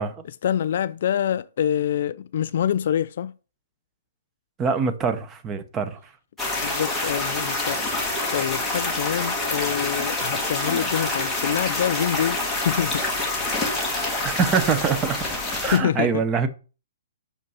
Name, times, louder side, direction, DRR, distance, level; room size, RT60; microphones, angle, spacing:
voice 1, 0.2-3.3 6.6-13.1 15.6-16.2, left 9 dB, 50° left, 0.3 m, -26 dB
voice 2, 4.6-6.0 14.2-16.5, right 6 dB, 15° right, 0.6 m, -24 dB
sound 1, 6.4-15.8, left 2 dB, ahead, 1.4 m, -26 dB
6.6 x 5.4 x 5.5 m
hypercardioid pair, 170°, 0 cm